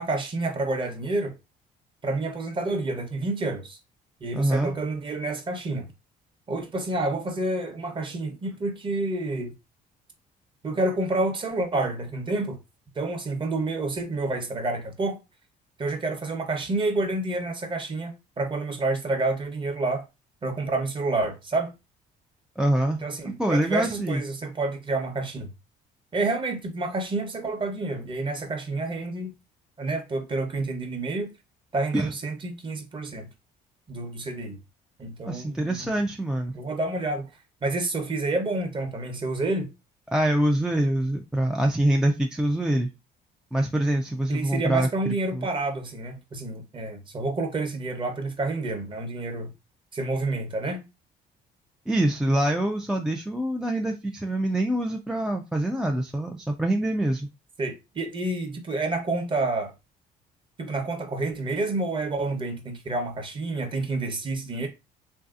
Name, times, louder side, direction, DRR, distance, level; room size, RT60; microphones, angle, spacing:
voice 1, 0.0-1.3 2.0-3.8 4.2-5.9 6.5-9.5 10.6-12.6 12.9-15.2 15.8-20.1 20.4-21.7 23.0-25.5 26.1-29.3 29.8-31.3 31.7-33.3 33.9-34.6 35.0-35.9 36.5-37.3 37.6-39.7 44.3-49.5 49.9-50.8 57.6-59.7 60.6-64.7, right 2 dB, 30° right, 0.8 m, -29 dB
voice 2, 4.3-4.7 22.6-23.0 23.4-24.2 31.9-32.1 35.2-36.5 40.1-42.9 43.5-44.9 45.3-45.5 51.9-57.3, right 1 dB, 5° right, 0.3 m, -25 dB
3.2 x 2.6 x 2.4 m
cardioid pair, 110°, 17 cm